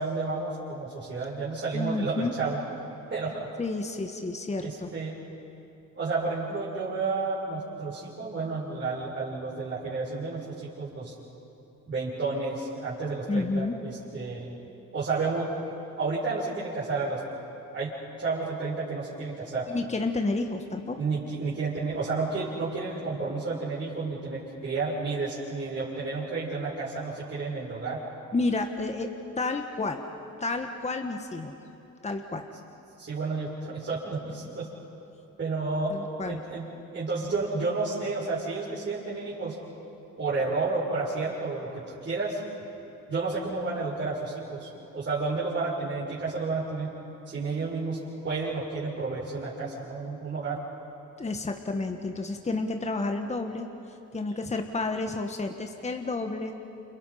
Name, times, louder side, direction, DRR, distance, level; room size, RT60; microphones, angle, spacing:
voice 1, 0.0-2.6 3.1-3.5 4.6-5.1 6.0-11.1 11.9-14.5 14.9-15.5 16.0-17.2 17.7-17.9 18.2-19.7 21.0-28.0 33.0-34.7 35.4-35.9 36.2-36.7 36.9-39.6 40.2-42.4 43.1-44.7 44.9-46.9 47.3-48.0 48.2-50.6, right 3 dB, 40° right, -8 dB, 6.3 m, -31 dB
voice 2, 1.7-2.4 3.6-4.9 13.3-13.7 19.7-21.0 28.3-29.1 29.4-30.0 30.4-31.5 32.0-32.4 35.9-36.4 51.2-53.7 54.1-56.5, left 3 dB, 20° left, 5 dB, 1.5 m, -30 dB
29.5 x 28.5 x 5.8 m, 2.8 s
cardioid pair, 90°, 30 cm